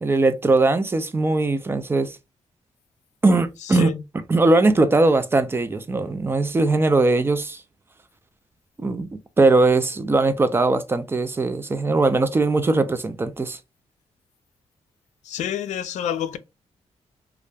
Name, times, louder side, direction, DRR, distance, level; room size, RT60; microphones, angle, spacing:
voice 1, 0.0-2.1 3.2-3.9 4.3-7.6 8.8-9.1 9.4-13.6, right 3 dB, 20° right, 0.3 m, -20 dB
voice 2, 3.6-4.0 15.2-16.4, left 9 dB, 85° left, 0.4 m, -28 dB
2.4 x 2.1 x 3.2 m
cardioid pair, 110°, 12 cm